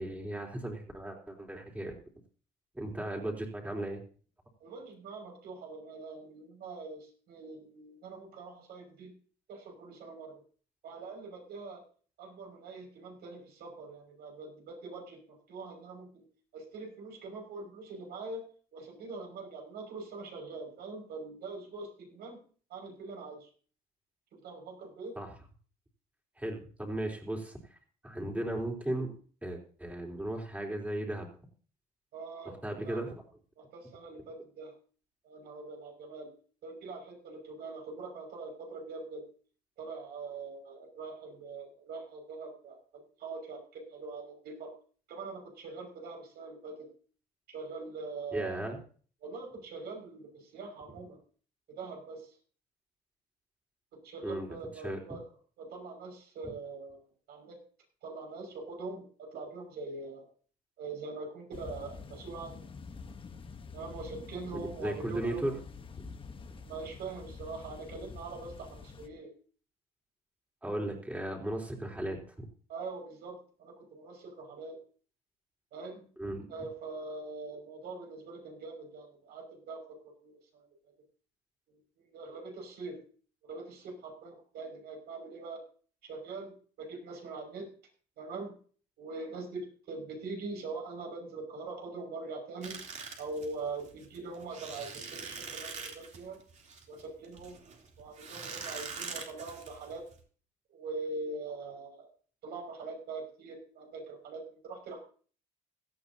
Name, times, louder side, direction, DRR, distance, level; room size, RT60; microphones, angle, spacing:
voice 1, 0.0-1.9 2.7-4.0 25.2-25.3 26.4-27.8 28.0-29.1 29.4-31.3 32.6-33.1 48.3-48.8 54.2-54.5 54.8-55.0 64.8-65.6 66.0-66.1 70.6-72.5 76.2-76.5, right 1 dB, 10° right, 1 dB, 3.7 m, -36 dB
voice 2, 4.6-9.1 9.5-10.4 10.8-11.8 12.2-16.2 16.5-18.4 18.7-22.4 22.7-23.5 24.3-25.2 32.1-32.5 32.8-33.0 33.6-34.7 35.2-36.3 36.6-39.2 39.8-44.7 45.1-46.9 47.5-48.8 49.2-51.2 51.7-52.4 54.0-55.2 55.6-57.6 58.0-60.3 60.8-62.6 63.7-65.5 66.6-69.3 72.7-74.8 75.7-76.0 76.5-79.8 80.2-80.7 82.0-83.0 83.4-85.6 86.0-87.7 88.2-88.5 89.0-92.8 93.2-96.4 96.9-97.6 98.0-100.0 100.7-102.1 102.4-105.0, right 3 dB, 70° right, 3 dB, 6.0 m, -43 dB
sound 1, 61.5-69.1, left 5 dB, 30° left, 1.2 m, -47 dB
sound 2, 92.6-100.2, right 5 dB, 45° right, 3.3 m, -43 dB
17.0 x 13.5 x 2.9 m, 0.42 s
cardioid pair, 110°, 17 cm